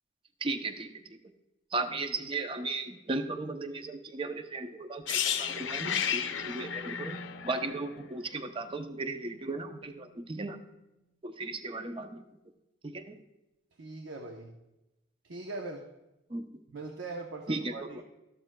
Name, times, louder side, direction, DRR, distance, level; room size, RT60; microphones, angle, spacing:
voice 1, 0.4-1.2 1.7-7.2 7.4-10.6 11.2-12.2 12.8-13.2 16.3-16.5 17.5-18.0, right 3 dB, 25° right, 8 dB, 0.5 m, -36 dB
sound 1, 5.1-8.9 9.2-9.4, left 8 dB, 75° left, 0.6 m, -33 dB
voice 2, 13.8-14.5 15.2-15.8 16.7-18.0, right 3 dB, 85° right, 2 dB, 0.8 m, -41 dB
13.0 x 12.0 x 2.2 m, 0.96 s
head